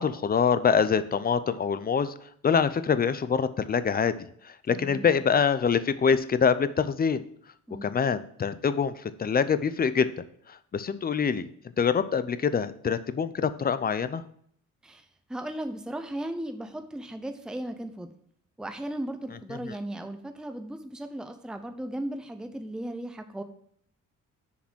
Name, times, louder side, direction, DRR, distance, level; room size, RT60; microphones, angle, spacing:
voice 1, 0.0-2.1 2.4-4.1 4.4-7.2 7.8-10.1 10.5-11.5 11.8-14.2 19.6-19.7, left 6 dB, 30° left, 13 dB, 0.6 m, -25 dB
voice 2, 4.7-5.2 7.7-7.9 14.8-18.1 18.6-23.4, right 1 dB, ahead, 7 dB, 0.7 m, -36 dB
6.9 x 4.9 x 6.2 m, 0.64 s
cardioid pair, 90°, 30 cm